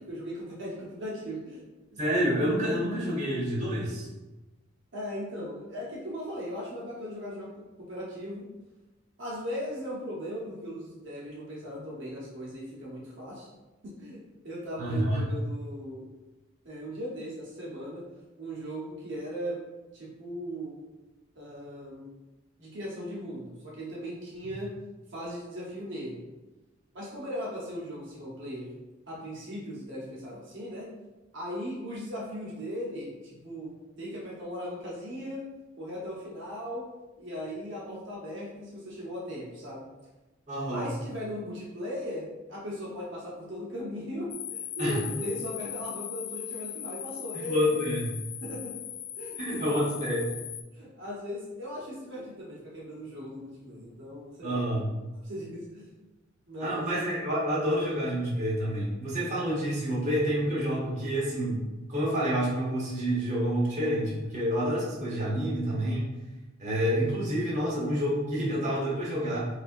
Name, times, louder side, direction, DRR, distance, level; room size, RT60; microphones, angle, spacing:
voice 1, 0.0-1.6 1.9-2.0 4.9-8.5 9.2-13.5 13.8-16.1 16.6-18.0 18.4-19.6 19.9-20.8 21.3-22.1 22.6-24.7 25.1-26.2 26.9-28.7 29.1-30.9 31.3-35.5 35.8-36.9 37.2-39.9 40.7-47.8 48.4-48.7 49.2-49.9 50.7-54.7 55.2-55.9 56.5-56.9, equal, 60° right, -5 dB, 0.8 m, -38 dB
voice 2, 2.0-4.1 14.8-15.2 40.5-40.9 44.8-45.0 47.3-48.0 49.4-50.2 54.4-54.9 56.6-61.6 61.9-66.1 66.6-69.5, equal, 35° right, -6 dB, 1.0 m, -28 dB
sound 1, 44.3-50.6, left 10 dB, 80° left, 0.3 m, -39 dB
4.1 x 2.6 x 2.5 m, 1.1 s
head